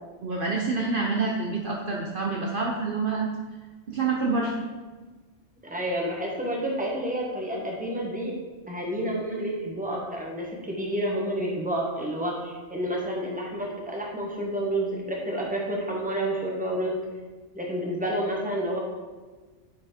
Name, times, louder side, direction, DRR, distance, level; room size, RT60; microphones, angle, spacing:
voice 1, 0.2-3.3 3.9-4.5, right 4 dB, 50° right, -1 dB, 0.9 m, -27 dB
voice 2, 5.6-8.3 8.7-16.9 17.5-18.8, right 1 dB, 5° right, -2 dB, 1.3 m, -29 dB
8.8 x 4.4 x 4.5 m, 1.3 s
omnidirectional pair, 1.3 m